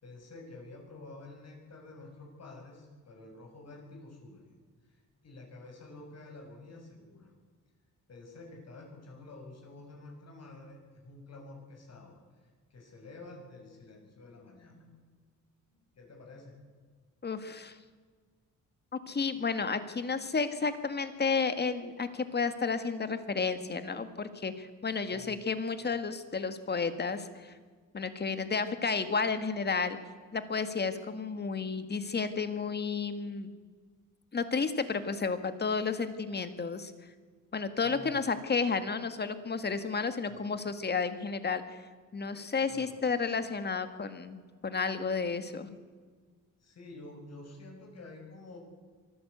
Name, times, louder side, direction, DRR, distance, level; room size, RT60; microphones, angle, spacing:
voice 1, 0.0-4.4 4.8-5.0 5.2-7.3 8.1-14.9 15.9-16.6 25.1-25.4 37.8-38.2 40.3-40.6 42.7-43.0 46.6-48.6, left 2 dB, 55° left, 2 dB, 6.8 m, -49 dB
voice 2, 17.2-17.8 19.1-27.5 27.9-30.0 30.3-33.5 34.3-36.9 37.5-41.6 42.1-45.8, left 5 dB, 30° left, 10 dB, 1.9 m, -32 dB
24.0 x 14.5 x 8.2 m, 1.5 s
cardioid pair, 115°, 32 cm